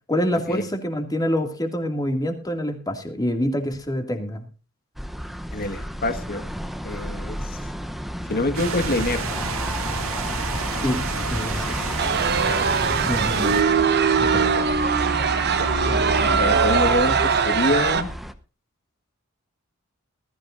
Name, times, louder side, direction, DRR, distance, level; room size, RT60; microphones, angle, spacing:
voice 1, 0.1-4.5 10.8-11.0 11.3-11.8 13.0-13.5 14.2-14.4, equal, 20° left, 5 dB, 2.3 m, -26 dB
sound 1, 5.0-18.3, equal, ahead, 0.8 m, -31 dB
voice 2, 5.5-6.5 6.8-7.6 8.3-9.5 12.4-12.6 14.2-14.6 15.5-15.7 16.4-18.1, left 2 dB, 45° left, 7 dB, 1.7 m, -26 dB
sound 2, 8.5-13.6, right 4 dB, 70° right, 2.3 m, -29 dB
sound 3, 12.0-18.0, right 6 dB, 50° right, 1.0 m, -21 dB
20.0 x 13.5 x 2.6 m, 0.34 s
head